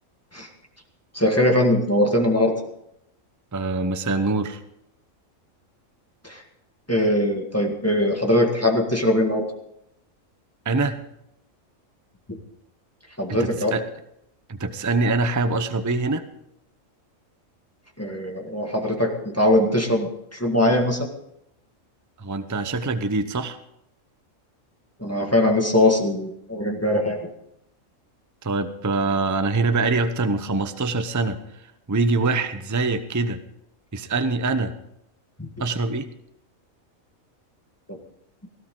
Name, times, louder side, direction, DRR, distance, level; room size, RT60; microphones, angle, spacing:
voice 1, 1.1-2.5 6.2-6.4 6.9-9.5 12.3-12.4 13.2-13.7 18.0-21.1 25.0-27.3 35.4-35.5 37.9-38.0, left 1 dB, 10° left, 2 dB, 1.8 m, -21 dB
voice 2, 3.5-4.6 10.6-11.0 13.3-13.8 14.5-16.2 22.2-23.6 28.4-31.4 31.9-33.4 33.9-34.7 35.6-36.1, right 3 dB, 20° right, 9 dB, 0.7 m, -24 dB
17.5 x 15.5 x 3.8 m, 0.79 s
omnidirectional pair, 1.4 m